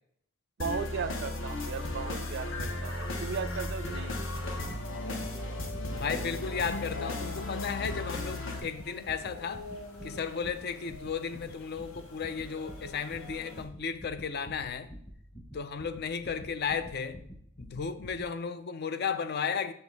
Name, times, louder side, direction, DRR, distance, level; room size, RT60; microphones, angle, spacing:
sound 1, 0.6-8.6, left 2 dB, 65° left, 1.1 m, -35 dB
voice 1, 0.6-4.2, right 6 dB, 55° right, 0.4 m, -36 dB
sound 2, 1.8-13.7, left 2 dB, 85° left, 1.2 m, -48 dB
sound 3, 3.3-18.3, equal, 20° left, 0.9 m, -48 dB
voice 2, 5.9-9.7 10.0-14.9 15.5-17.2 17.6-19.7, left 6 dB, 50° left, 0.5 m, -34 dB
6.9 x 5.2 x 3.9 m
head